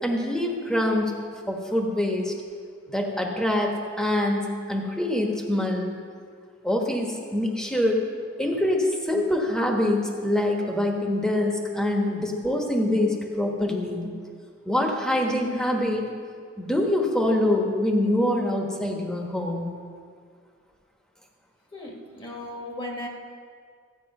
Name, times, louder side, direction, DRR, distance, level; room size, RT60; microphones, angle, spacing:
voice 1, 0.0-1.1 1.5-2.3 2.9-5.9 6.6-8.0 8.4-14.1 14.6-16.1 16.6-19.7, left 1 dB, 5° left, 1 dB, 1.3 m, -25 dB
voice 2, 21.7-23.1, left 1 dB, 25° left, 0 dB, 1.6 m, -36 dB
13.5 x 8.9 x 5.5 m, 2.1 s
head